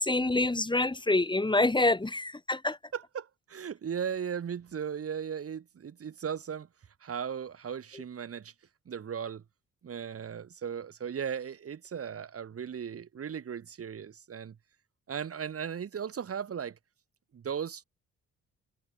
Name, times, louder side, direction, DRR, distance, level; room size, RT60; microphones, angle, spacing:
voice 1, 0.0-2.8, left 2 dB, 15° left, 3.8 m, -26 dB
voice 2, 2.9-6.7 7.0-8.5 8.9-9.4 9.8-14.6 15.1-16.8 17.3-17.8, right 7 dB, 50° right, 3.6 m, -37 dB
cardioid pair, 90°, 30 cm